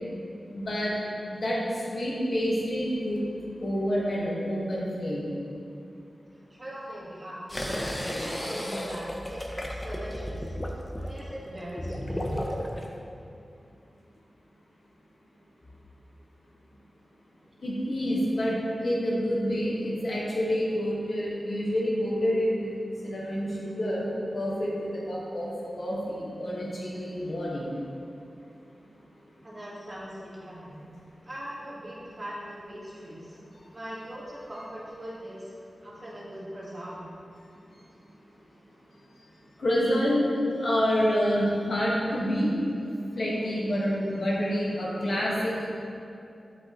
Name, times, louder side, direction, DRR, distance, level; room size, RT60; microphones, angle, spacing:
voice 1, 0.5-0.9 1.3-1.6 1.9-3.2 3.6-5.2 17.6-22.7 23.0-25.5 25.8-27.7 39.6-40.3 40.6-42.5 43.1-45.7, equal, 65° left, -6 dB, 1.5 m, -28 dB
voice 2, 6.5-10.5 10.9-12.2 29.4-30.8 31.2-33.4 33.7-35.5 35.8-37.0, equal, 35° right, -7 dB, 1.6 m, -41 dB
sound 1, 7.5-12.9, equal, 15° left, 0.6 m, -33 dB
8.2 x 5.6 x 3.0 m, 2.5 s
wide cardioid pair, 110°, 0 cm